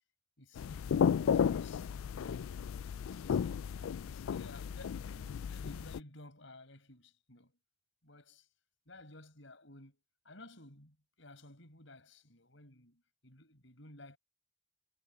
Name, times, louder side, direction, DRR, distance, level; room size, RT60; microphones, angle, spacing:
voice 1, 0.4-2.6 3.2-7.6 8.0-8.5 8.9-14.2, left 2 dB, 65° left, 7.2 m, -55 dB
sound 1, 0.6-6.0, left 7 dB, 85° left, 0.3 m, -33 dB
head